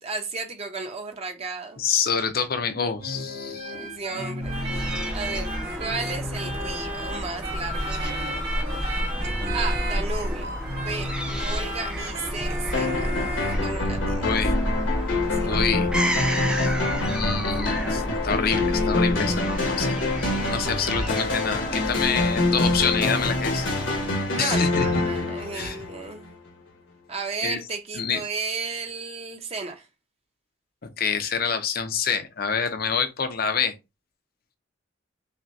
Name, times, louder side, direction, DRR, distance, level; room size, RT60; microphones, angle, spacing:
voice 1, 0.0-1.8 3.7-8.7 9.5-14.4 15.3-15.7 24.3-26.4 27.1-29.9, right 4 dB, 30° right, 0.7 m, -34 dB
voice 2, 1.8-3.7 14.2-14.5 15.4-15.9 16.5-16.7 17.1-23.7 24.4-25.0 25.5-25.8 27.4-27.6 27.9-28.2 30.8-33.7, left 6 dB, 50° left, 0.6 m, -27 dB
sound 1, 3.0-13.5, equal, 55° right, 1.9 m, -33 dB
Fowl / Gull seagull, 4.4-24.3, equal, 5° right, 0.4 m, -31 dB
sound 2, 12.7-26.3, left 2 dB, 80° left, 1.2 m, -26 dB
5.6 x 2.2 x 2.7 m
head